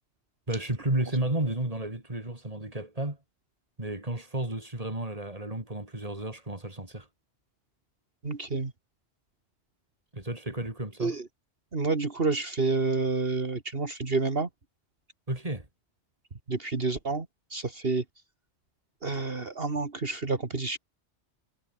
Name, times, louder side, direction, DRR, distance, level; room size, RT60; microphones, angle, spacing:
voice 1, 0.5-3.2 3.8-7.1 10.1-11.2 15.3-15.7, right 1 dB, 30° right, 4.2 m, -32 dB
voice 2, 8.2-8.7 11.0-11.2 11.7-14.5 16.5-17.3 17.5-18.0 19.0-20.8, right 3 dB, 55° right, 2.5 m, -29 dB
omnidirectional pair, 1.1 m